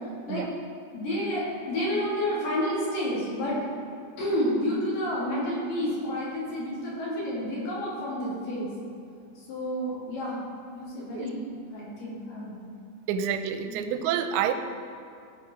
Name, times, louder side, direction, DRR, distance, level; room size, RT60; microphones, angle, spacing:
voice 1, 0.9-3.6 4.2-8.7 9.5-10.4 10.7-11.4 11.7-12.6 13.7-13.8, equal, 55° left, -7 dB, 4.0 m, -30 dB
voice 2, 13.1-14.5, right 8 dB, 90° right, 8 dB, 2.8 m, -28 dB
15.0 x 5.9 x 5.0 m, 2.6 s
omnidirectional pair, 5.1 m